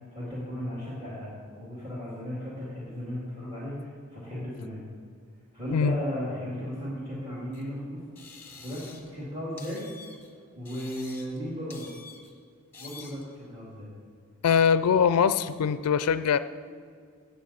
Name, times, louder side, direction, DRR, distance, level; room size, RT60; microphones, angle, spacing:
voice 1, 0.1-4.8 5.5-8.0 8.5-9.8 10.6-11.9 12.8-13.9, equal, 25° right, -7 dB, 2.3 m, -36 dB
Squeaky Office Chair, 7.5-7.6 8.1-9.2 9.6-10.3 10.6-11.4 11.7-12.3 12.7-13.3, left 4 dB, 10° left, 1.2 m, -48 dB
voice 2, 14.4-16.4, left 7 dB, 90° left, 14 dB, 0.4 m, -22 dB
16.5 x 7.7 x 4.2 m, 2.2 s
head